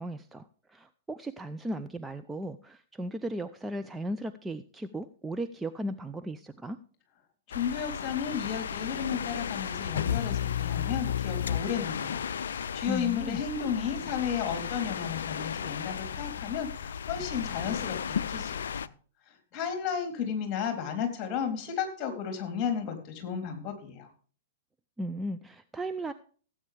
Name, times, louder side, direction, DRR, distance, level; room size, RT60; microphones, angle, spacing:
voice 1, 0.0-6.8 12.9-13.4 25.0-26.1, right 1 dB, 10° right, 8 dB, 0.6 m, -36 dB
sound 1, 7.5-18.9, left 8 dB, 65° left, 0.4 m, -34 dB
voice 2, 7.5-18.9 19.5-24.1, left 7 dB, 30° left, 5 dB, 3.5 m, -33 dB
17.0 x 8.6 x 3.4 m, 0.42 s
figure-of-eight pair, 105°, 0 cm